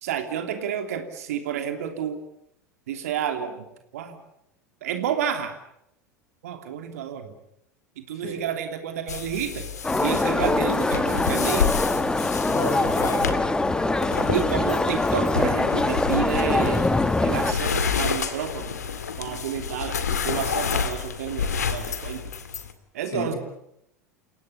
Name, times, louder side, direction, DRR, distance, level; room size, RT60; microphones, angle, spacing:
voice 1, 0.0-2.2 2.9-3.6 3.9-4.2 4.8-5.5 6.4-7.3 8.0-9.7 10.0-11.7 14.3-16.9 17.2-18.8 19.2-22.3 22.9-23.3, right 9 dB, 60° right, 6 dB, 3.0 m, -30 dB
sound 1, 9.1-22.7, left 6 dB, 75° left, 2.1 m, -30 dB
sound 2, 9.8-17.5, left 2 dB, 10° left, 1.4 m, -23 dB
voice 2, 12.5-13.4 23.1-23.4, left 1 dB, 35° left, 4 dB, 7.8 m, -31 dB
29.5 x 17.5 x 8.3 m, 0.79 s
figure-of-eight pair, 80°, 9 cm